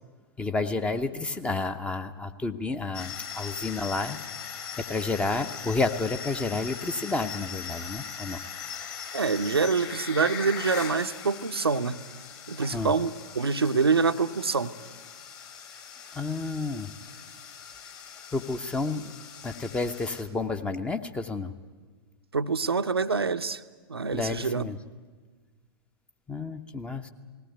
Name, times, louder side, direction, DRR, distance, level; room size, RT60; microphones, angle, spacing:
voice 1, 0.4-4.2 4.8-8.4 12.7-12.9 16.1-16.9 18.3-19.1 19.4-21.5 24.1-24.8 26.3-27.1, left 3 dB, 10° left, 9 dB, 0.9 m, -30 dB
sound 1, 2.9-20.2, left 7 dB, 30° left, 2.3 m, -40 dB
voice 2, 9.1-12.0 12.5-14.8 22.3-23.6 23.9-24.7, right 4 dB, 75° right, 9 dB, 0.7 m, -26 dB
18.5 x 17.0 x 9.5 m, 1.4 s
figure-of-eight pair, 105°, 13 cm